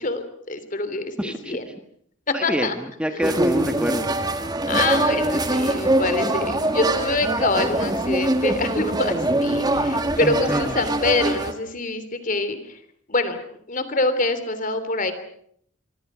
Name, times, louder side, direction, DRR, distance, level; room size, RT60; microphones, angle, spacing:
voice 1, 0.0-1.7 2.3-2.7 3.1-3.2 4.7-9.1 9.4-12.6 13.1-13.4 13.7-15.1, left 2 dB, 45° left, 11 dB, 3.1 m, -25 dB
voice 2, 1.2-1.6 2.3-4.1 10.2-10.7, equal, 5° right, 7 dB, 1.5 m, -26 dB
sound 1, 3.2-11.5, right 1 dB, 20° right, 2.0 m, -23 dB
26.0 x 24.0 x 6.2 m, 0.66 s
head